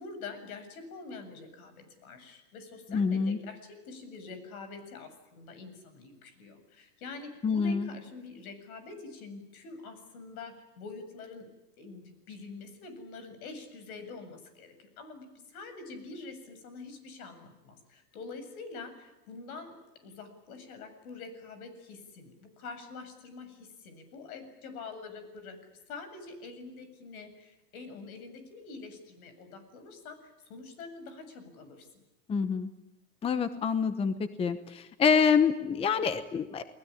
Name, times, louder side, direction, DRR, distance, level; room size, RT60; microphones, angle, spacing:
voice 1, 0.0-11.5 11.8-32.0, left 4 dB, 70° left, 9 dB, 7.7 m, -46 dB
voice 2, 2.9-3.4 7.4-7.9 32.3-32.7 33.2-36.6, left 6 dB, 15° left, 12 dB, 0.9 m, -26 dB
29.5 x 20.0 x 10.0 m, 1.0 s
supercardioid pair, 150°, 45 cm